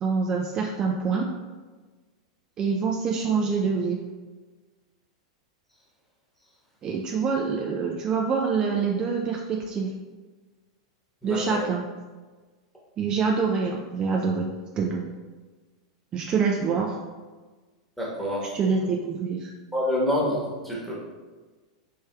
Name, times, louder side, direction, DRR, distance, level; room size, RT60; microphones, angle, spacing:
voice 1, 0.0-1.3 2.6-4.0 6.8-9.9 11.2-11.8 13.0-15.0 16.1-17.0 18.4-19.5, right 5 dB, 30° right, 0 dB, 0.3 m, -26 dB
voice 2, 11.2-11.6 18.0-18.5 19.7-20.9, left 1 dB, 5° left, -5 dB, 1.2 m, -27 dB
4.3 x 3.3 x 2.3 m, 1.3 s
figure-of-eight pair, 95°, 3 cm